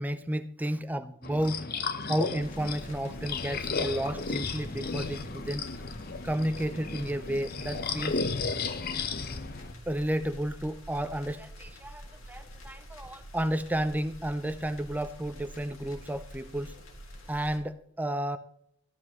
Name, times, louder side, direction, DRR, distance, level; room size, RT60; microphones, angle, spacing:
voice 1, 0.0-1.7 2.1-5.7 6.2-8.2 9.9-16.7 17.3-18.4, right 1 dB, 5° right, 10 dB, 0.4 m, -32 dB
sound 1, 1.2-9.7, left 4 dB, 45° left, 0.8 m, -34 dB
sound 2, 2.4-17.6, equal, 70° left, 2.4 m, -47 dB
14.0 x 11.0 x 3.0 m, 0.72 s
head